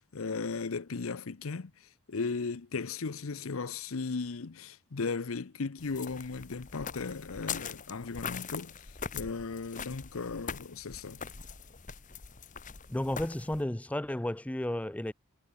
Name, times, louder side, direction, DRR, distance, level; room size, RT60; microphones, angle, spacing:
voice 1, 0.0-8.9 9.1-11.2, left 4 dB, 75° left, 0.7 m, -36 dB
sound 1, 5.8-13.6, left 6 dB, 35° left, 1.2 m, -42 dB
voice 2, 12.9-15.1, left 1 dB, 5° left, 0.4 m, -33 dB
head